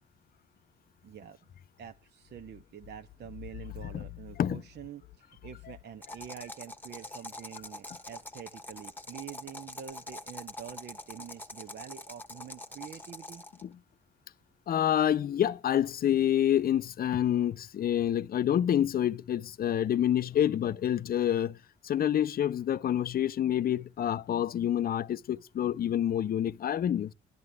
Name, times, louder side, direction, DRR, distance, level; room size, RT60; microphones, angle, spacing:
voice 1, 1.0-1.4 1.8-13.4, right 9 dB, 55° right, 0.8 m, -46 dB
sound 1, 6.0-13.6, left 1 dB, 10° left, 1.2 m, -44 dB
voice 2, 14.7-21.6 21.8-27.1, left 10 dB, 50° left, 0.5 m, -27 dB
22.0 x 11.0 x 2.2 m
cardioid pair, 90°, 20 cm